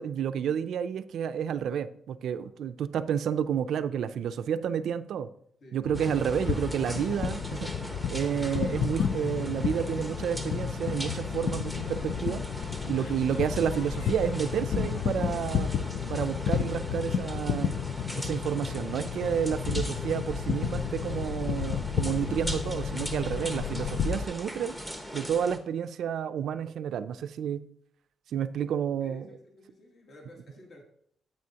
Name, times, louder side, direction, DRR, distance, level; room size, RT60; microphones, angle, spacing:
voice 1, 0.0-5.3 5.7-7.7 8.1-12.4 12.9-15.7 16.1-17.7 18.2-24.7 25.1-27.6 28.3-29.3, right 8 dB, 65° right, 0.4 m, -30 dB
sound 1, 5.8-24.2, left 8 dB, 60° left, 0.4 m, -32 dB
sound 2, 5.9-25.6, equal, 5° left, 0.9 m, -40 dB
voice 2, 12.7-13.0 29.0-30.8, left 1 dB, 45° left, 1.6 m, -52 dB
9.5 x 8.3 x 2.9 m
cardioid pair, 170°, 0 cm